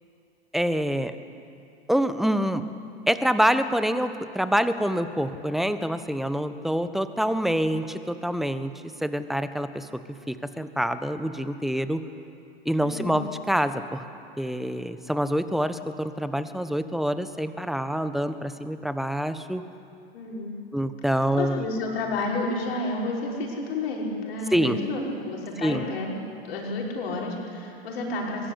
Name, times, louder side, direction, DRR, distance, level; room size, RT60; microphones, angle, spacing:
voice 1, 0.5-1.1 1.9-2.6 3.1-8.7 9.0-9.9 10.3-12.0 12.6-14.0 14.4-19.6 20.7-21.6 24.5-24.8 25.6-25.8, equal, ahead, 11 dB, 1.3 m, -26 dB
voice 2, 12.8-13.2 20.1-20.5 21.4-26.1 26.4-28.5, left 2 dB, 70° left, -2 dB, 6.0 m, -30 dB
22.5 x 22.0 x 8.6 m, 2.7 s
figure-of-eight pair, 85°, 31 cm